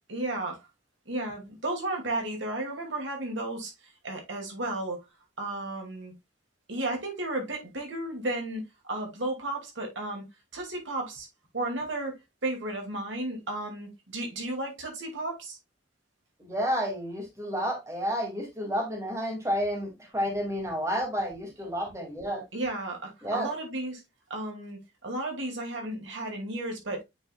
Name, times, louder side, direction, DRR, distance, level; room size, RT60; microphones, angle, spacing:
voice 1, 0.1-0.7 1.1-3.7 4.0-5.0 5.4-6.1 6.7-10.2 10.5-11.3 11.5-15.6 22.5-24.0 24.3-27.0, right 2 dB, 80° right, 2.4 m, -33 dB
voice 2, 16.4-22.4 23.2-23.5, equal, 15° right, 2.3 m, -30 dB
8.7 x 4.8 x 2.3 m
head